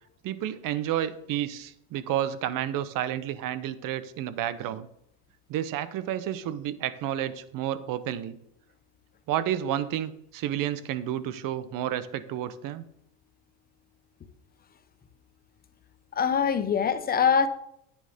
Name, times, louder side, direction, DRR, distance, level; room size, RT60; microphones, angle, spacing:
voice 1, 0.2-4.9 5.5-8.4 9.3-12.8, right 11 dB, 45° right, 1.0 m, -30 dB
voice 2, 16.1-17.5, left 7 dB, 20° left, 0.9 m, -23 dB
11.0 x 9.2 x 3.6 m
supercardioid pair, 130°, 44 cm